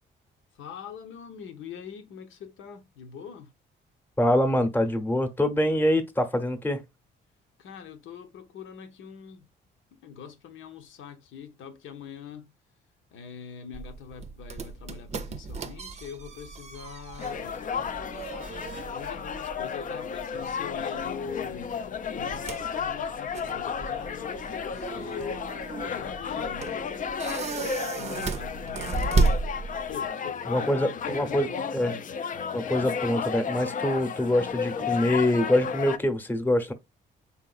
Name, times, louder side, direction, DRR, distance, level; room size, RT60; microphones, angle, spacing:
voice 1, 0.6-3.5 7.6-9.5 9.9-12.5 13.1-17.6 18.7-21.7 22.2-25.4 25.8-26.7 27.9-29.5 29.9-32.0, left 7 dB, 80° left, 0.9 m, -43 dB
voice 2, 4.2-6.8 30.5-31.5 31.7-31.9 32.5-36.7, left 1 dB, 10° left, 0.9 m, -25 dB
sound 1, 13.7-30.1, right 4 dB, 35° right, 0.6 m, -33 dB
sound 2, 17.2-36.0, left 6 dB, 40° left, 0.5 m, -33 dB
4.2 x 3.7 x 2.4 m
cardioid pair, 90°, 20 cm